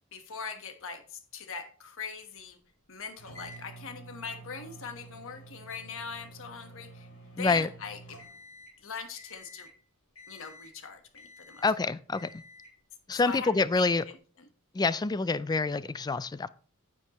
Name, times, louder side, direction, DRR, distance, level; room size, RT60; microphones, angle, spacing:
voice 1, 0.1-2.6 2.9-8.2 8.8-9.7 10.3-11.6 13.1-13.5 13.8-14.2, left 5 dB, 65° left, 1.3 m, -41 dB
sound 1, 3.2-8.8 9.2-9.7 10.2-10.8 11.1-11.8 12.1-12.8, right 1 dB, 80° left, 3.9 m, -50 dB
voice 2, 7.4-7.7 11.6-12.4 13.1-14.0 14.7-16.5, left 3 dB, 20° left, 0.3 m, -27 dB
9.7 x 7.5 x 3.0 m
head